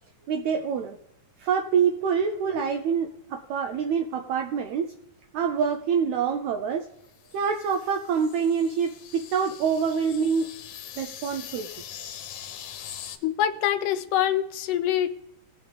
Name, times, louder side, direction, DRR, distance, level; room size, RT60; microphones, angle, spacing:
voice 1, 0.3-1.0 1.4-4.9 5.3-6.9 7.3-10.5 11.0-11.7, right 6 dB, 75° right, 4 dB, 1.8 m, -26 dB
sound 1, 7.1-13.2, left 9 dB, 70° left, 2.1 m, -42 dB
voice 2, 13.2-15.1, left 11 dB, 90° left, 10 dB, 2.3 m, -25 dB
18.5 x 7.3 x 3.4 m, 0.83 s
omnidirectional pair, 3.7 m